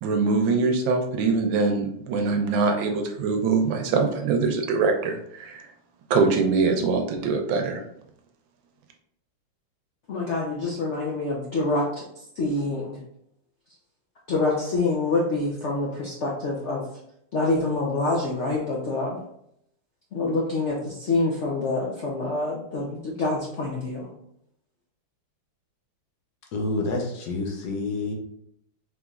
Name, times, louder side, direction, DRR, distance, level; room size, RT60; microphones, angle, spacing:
voice 1, 0.0-5.6 6.1-7.8, right 4 dB, 75° right, 4 dB, 1.3 m, -23 dB
voice 2, 10.1-11.8 12.4-13.0 14.3-16.8 17.3-19.2 20.1-24.1, left 2 dB, 85° left, -3 dB, 0.6 m, -26 dB
voice 3, 26.5-28.1, left 2 dB, 65° left, 1 dB, 1.4 m, -28 dB
4.9 x 3.3 x 2.4 m, 0.73 s
omnidirectional pair, 2.2 m